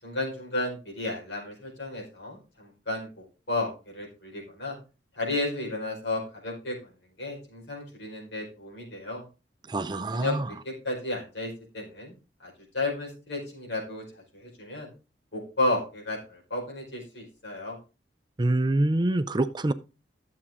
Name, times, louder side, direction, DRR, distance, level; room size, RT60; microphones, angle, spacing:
voice 1, 0.0-4.8 5.1-6.9 7.2-9.2 10.1-10.4 10.6-12.1 12.4-14.0 14.3-14.9 15.3-17.8, left 2 dB, 75° left, 4.8 m, -33 dB
voice 2, 9.7-10.4 18.4-19.7, right 2 dB, 25° right, 0.5 m, -25 dB
12.5 x 7.4 x 3.6 m
head